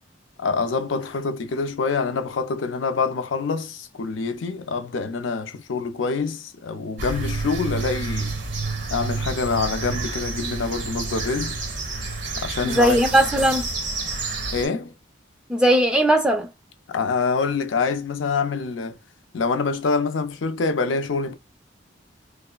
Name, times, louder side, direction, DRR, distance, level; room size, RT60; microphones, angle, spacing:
voice 1, 0.4-8.3 8.9-11.5 12.4-13.0 14.5-14.9 16.9-19.0 19.3-21.3, left 4 dB, 80° left, 0.5 m, -26 dB
sound 1, 7.0-14.7, right 3 dB, 65° right, 0.9 m, -29 dB
voice 2, 12.6-13.7 15.5-16.5, right 1 dB, 5° right, 0.5 m, -18 dB
3.2 x 2.1 x 2.2 m
head